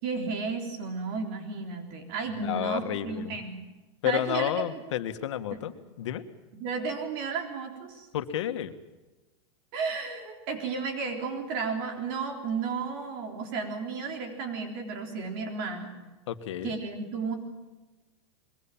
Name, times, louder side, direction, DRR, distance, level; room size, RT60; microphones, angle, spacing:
voice 1, 0.0-3.6 4.0-4.8 5.5-5.6 6.5-8.1 9.7-15.9 16.6-17.4, right 4 dB, 50° right, 4 dB, 3.7 m, -33 dB
voice 2, 2.4-3.4 4.0-5.7 6.0-6.2 8.1-8.7 16.3-16.8, left 11 dB, 80° left, 9 dB, 1.7 m, -31 dB
24.0 x 22.5 x 7.4 m, 1.1 s
supercardioid pair, 160°, 15 cm